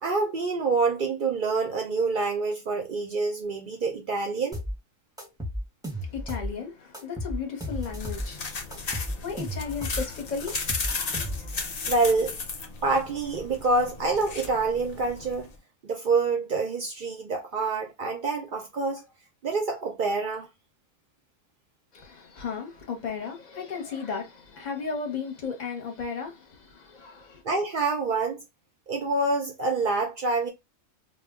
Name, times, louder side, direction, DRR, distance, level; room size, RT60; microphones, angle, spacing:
voice 1, 0.0-4.6 11.9-12.4 12.8-15.5 15.8-19.0 19.4-20.5 27.4-28.4 28.9-30.5, right 3 dB, 60° right, 0.5 m, -26 dB
sound 1, 4.5-4.8 5.2-6.5 6.9-8.3 8.7-10.1 10.5-11.6, equal, 5° right, 0.5 m, -33 dB
voice 2, 6.0-11.5 21.9-27.4, left 5 dB, 40° left, 0.7 m, -35 dB
sound 2, 7.7-15.6, left 4 dB, 60° left, 0.4 m, -35 dB
2.3 x 2.0 x 3.4 m
omnidirectional pair, 1.3 m